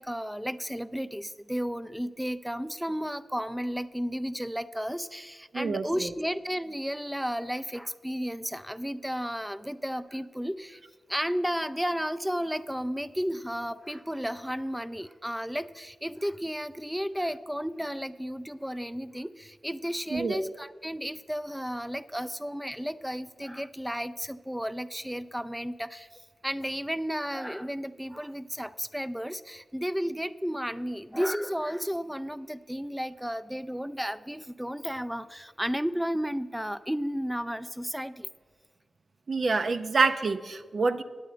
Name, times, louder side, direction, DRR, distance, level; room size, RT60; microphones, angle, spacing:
voice 1, 0.0-10.8 11.1-26.1 26.4-38.3, equal, 5° right, 11 dB, 0.4 m, -33 dB
voice 2, 5.5-6.1 20.1-20.4 39.3-41.0, right 4 dB, 65° right, 9 dB, 0.5 m, -27 dB
9.0 x 8.5 x 5.0 m, 1.5 s
cardioid pair, 40°, 0 cm